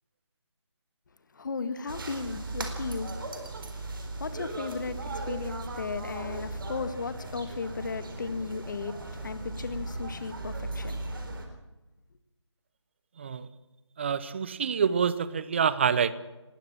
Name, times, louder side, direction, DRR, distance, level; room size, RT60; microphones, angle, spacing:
voice 1, 1.3-3.1 3.7-3.8 4.2-11.0, left 4 dB, 40° left, 1.7 m, -35 dB
sound 1, 1.9-11.5, right 2 dB, 45° right, 4.3 m, -37 dB
voice 2, 13.2-13.5 14.0-16.1, right 7 dB, 25° right, 0.8 m, -26 dB
20.0 x 18.0 x 7.4 m
figure-of-eight pair, 160°, 15 cm